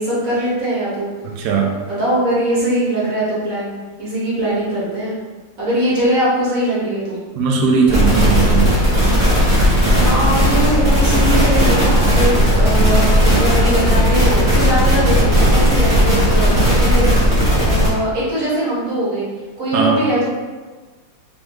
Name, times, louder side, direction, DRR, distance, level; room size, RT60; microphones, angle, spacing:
voice 1, 0.0-1.1 1.9-5.1 5.6-7.2 9.7-17.1 17.6-19.3 19.6-20.3, right 1 dB, 45° right, -8 dB, 1.6 m, -21 dB
voice 2, 1.2-1.7 7.4-8.8 19.7-20.0, right 5 dB, 90° right, 0 dB, 0.8 m, -17 dB
sound 1, 7.9-17.9, equal, 20° right, 1.0 m, -14 dB
3.4 x 3.0 x 3.2 m, 1.3 s
omnidirectional pair, 2.3 m